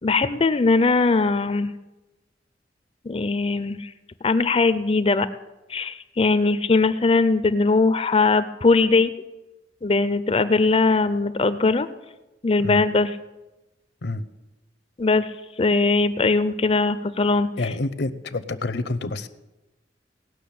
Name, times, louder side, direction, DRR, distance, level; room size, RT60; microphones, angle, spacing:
voice 1, 0.0-1.7 3.0-3.9 4.2-5.3 5.7-9.1 9.8-11.9 12.4-13.2 15.0-15.3 15.6-17.5, left 3 dB, 30° left, 13 dB, 0.5 m, -20 dB
voice 2, 17.6-19.3, left 2 dB, 65° left, 11 dB, 0.7 m, -28 dB
18.5 x 6.3 x 8.5 m, 1.0 s
head